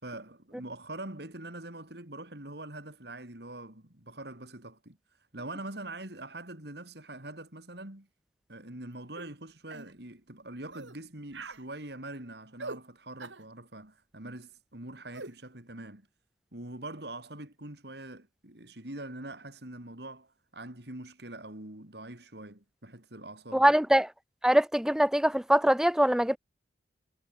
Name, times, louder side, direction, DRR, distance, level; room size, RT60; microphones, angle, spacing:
voice 1, 0.0-5.0 5.3-8.1 8.5-16.1 16.5-23.7, right 2 dB, 60° right, 3.5 m, -43 dB
sound 1, 9.2-9.3 9.7-9.9 10.7-11.0 11.3-11.6 12.6-12.8 13.2-13.4 15.1-15.3, right 3 dB, 85° right, 3.7 m, -42 dB
voice 2, 23.5-24.1 24.4-26.4, equal, 5° right, 0.3 m, -23 dB
head